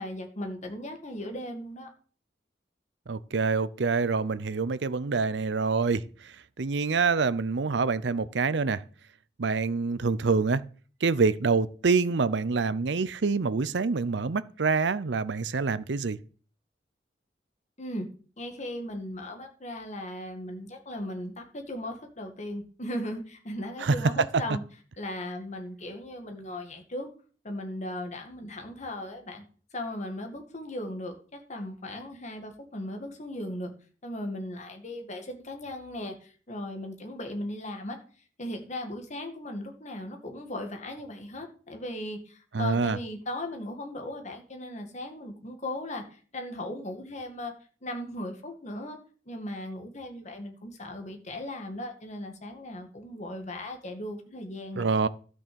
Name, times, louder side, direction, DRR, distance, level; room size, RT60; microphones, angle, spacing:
voice 1, 0.0-1.9 17.8-18.1 18.4-24.6 25.0-27.1 27.4-29.4 29.7-33.7 34.0-38.0 38.4-47.5 47.8-49.0 49.3-54.9, left 1 dB, 40° left, 2.0 m, -37 dB
voice 2, 3.1-8.8 9.4-10.6 11.0-16.2 23.8-24.0 42.5-43.0 54.8-55.1, right 4 dB, 75° right, 0.6 m, -26 dB
12.5 x 6.2 x 6.9 m
head